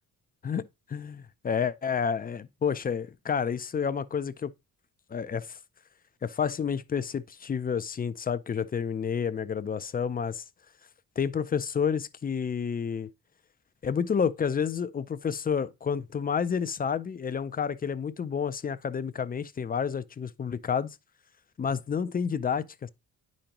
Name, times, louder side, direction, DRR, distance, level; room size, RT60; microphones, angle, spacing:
voice 1, 0.4-4.5 5.1-5.6 6.2-10.4 11.2-13.1 13.8-21.0 21.6-22.9, left 7 dB, 25° left, 0.3 m, -30 dB
9.8 x 5.2 x 2.9 m
wide cardioid pair, 165°, 37 cm